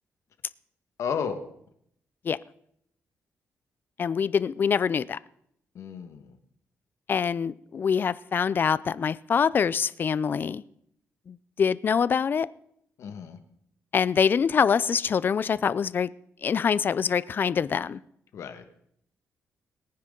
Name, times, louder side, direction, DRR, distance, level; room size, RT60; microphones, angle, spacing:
voice 1, 1.0-1.5 5.7-6.4 13.0-13.4 18.3-18.6, left 6 dB, 70° left, 8 dB, 1.6 m, -33 dB
voice 2, 4.0-5.2 7.1-10.6 11.3-12.5 13.9-16.1 16.4-18.0, left 6 dB, 40° left, 18 dB, 0.4 m, -25 dB
21.5 x 9.7 x 3.8 m, 0.70 s
cardioid pair, 130°, 5 cm